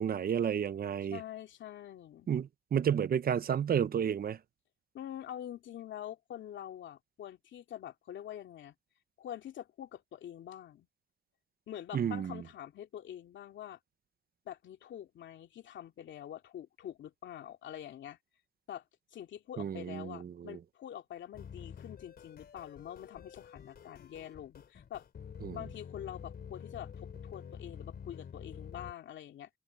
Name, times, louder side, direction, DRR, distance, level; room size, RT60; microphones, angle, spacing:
voice 1, 0.0-1.2 2.3-4.4 11.9-12.4 19.6-20.6 25.4-25.6, right 8 dB, 50° right, 0.9 m, -31 dB
voice 2, 1.1-2.3 4.9-8.7 9.2-10.9 11.7-13.8 14.5-18.2 18.7-18.8 19.1-25.0 25.5-29.5, left 11 dB, 70° left, 2.6 m, -45 dB
sound 1, 21.3-28.9, left 7 dB, 55° left, 3.5 m, -48 dB
cardioid pair, 90°, 20 cm